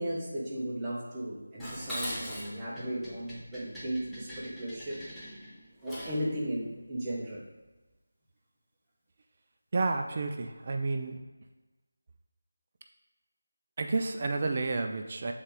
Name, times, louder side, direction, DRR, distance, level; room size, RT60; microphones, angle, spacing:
voice 1, 0.0-5.0 5.8-7.4, right 1 dB, 15° right, -6 dB, 1.2 m, -35 dB
Dishes pots and pans, 1.6-6.3, equal, 5° left, 0.9 m, -41 dB
voice 2, 9.7-11.2 13.8-15.3, right 3 dB, 40° right, 5 dB, 0.4 m, -30 dB
7.8 x 4.0 x 3.8 m, 1.2 s
figure-of-eight pair, 165°, 0 cm